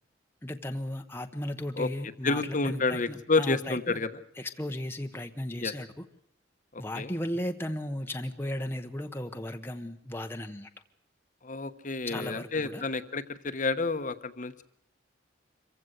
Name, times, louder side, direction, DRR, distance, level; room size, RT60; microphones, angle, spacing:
voice 1, 0.4-4.0 4.4-6.1 6.8-10.7 12.0-12.8, left 1 dB, 10° left, 5 dB, 0.9 m, -35 dB
voice 2, 2.2-4.1 5.6-5.7 6.7-7.1 11.4-14.6, left 3 dB, 40° left, 10 dB, 1.1 m, -29 dB
26.0 x 15.5 x 8.0 m, 0.75 s
head